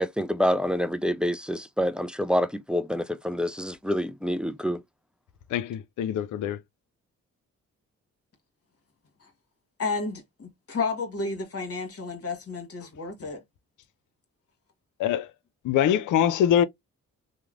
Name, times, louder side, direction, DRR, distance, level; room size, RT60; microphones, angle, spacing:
voice 1, 0.0-4.8, equal, 5° right, 0.3 m, -27 dB
voice 2, 5.5-6.6 15.0-15.3 15.6-16.6, left 10 dB, 65° left, 0.4 m, -23 dB
voice 3, 9.8-13.4, left 4 dB, 45° left, 1.2 m, -31 dB
3.0 x 2.0 x 2.4 m
supercardioid pair, 45°, 34 cm